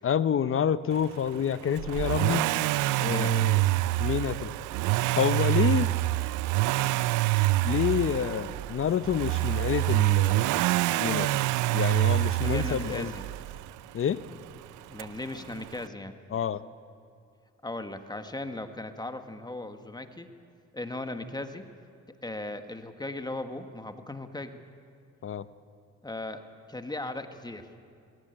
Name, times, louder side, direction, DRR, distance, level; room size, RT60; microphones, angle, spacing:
voice 1, 0.0-2.5 3.0-3.6 4.0-4.5 5.2-5.9 7.6-10.6 11.0-11.3 11.7-13.1 13.9-14.2 16.3-16.6 25.2-25.5, left 8 dB, 45° left, 14 dB, 0.8 m, -28 dB
Accelerating revving vroom, 1.8-13.7 15.0-15.1, right 18 dB, 90° right, 0.5 m, -26 dB
voice 2, 3.0-3.8 12.4-13.2 14.9-16.1 17.6-20.3 20.7-21.7 22.1-24.6 26.0-27.7, left 2 dB, 15° left, 8 dB, 1.5 m, -37 dB
19.5 x 17.5 x 9.1 m, 2.5 s
cardioid pair, 90°, 30 cm